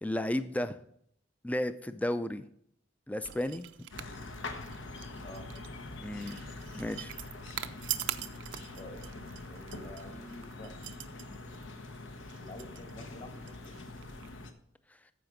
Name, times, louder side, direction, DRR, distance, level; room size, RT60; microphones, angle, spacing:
voice 1, 0.0-0.8 1.4-2.4 3.1-3.6 6.0-6.4 6.7-7.1, left 1 dB, 10° left, 11 dB, 0.4 m, -33 dB
sound 1, 3.2-14.3, right 12 dB, 75° right, 0.6 m, -44 dB
sound 2, 3.9-14.5, left 2 dB, 75° left, 1.0 m, -44 dB
voice 2, 9.5-10.8 12.3-13.9, left 1 dB, 35° left, 4 dB, 1.7 m, -48 dB
14.0 x 5.0 x 5.1 m, 0.67 s
head